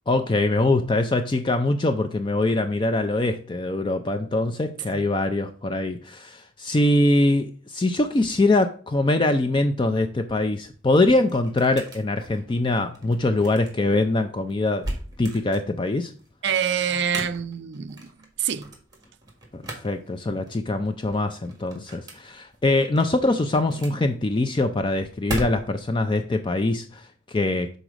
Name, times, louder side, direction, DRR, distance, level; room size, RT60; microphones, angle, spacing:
voice 1, 0.1-14.9 15.2-16.1 19.5-27.8, left 2 dB, 25° left, 0.4 m, -23 dB
sound 1, 10.4-26.0, right 1 dB, 20° right, 1.4 m, -39 dB
voice 2, 16.4-18.7 20.3-20.4, right 8 dB, 55° right, 0.4 m, -27 dB
6.2 x 4.0 x 4.9 m
head